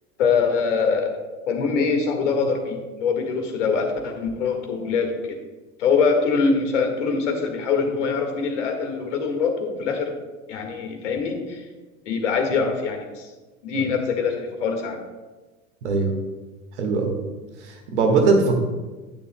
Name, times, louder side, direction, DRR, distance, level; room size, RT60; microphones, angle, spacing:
voice 1, 0.2-1.2 1.5-5.4 5.8-10.1 10.5-11.7 12.1-13.3 13.6-15.0, left 5 dB, 60° left, 4 dB, 1.8 m, -23 dB
voice 2, 15.8-16.1 16.8-17.2 17.7-18.6, right 4 dB, 55° right, 4 dB, 1.7 m, -20 dB
19.0 x 6.9 x 2.2 m, 1.2 s
figure-of-eight pair, 85°, 41 cm